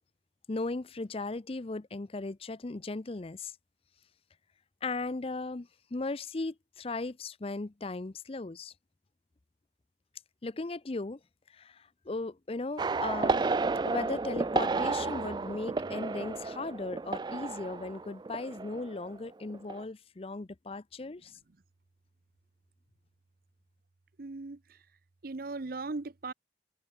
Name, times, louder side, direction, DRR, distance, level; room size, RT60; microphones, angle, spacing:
voice 1, 0.5-3.5 4.8-8.7 10.4-11.2 11.5-13.6 13.8-21.4, left 3 dB, 35° left, 0.6 m, -37 dB
sound 1, 12.8-19.2 19.5-19.8, right 3 dB, 25° right, 0.3 m, -32 dB
voice 2, 24.2-24.8 25.2-26.3, right 3 dB, 55° right, 0.7 m, -38 dB
head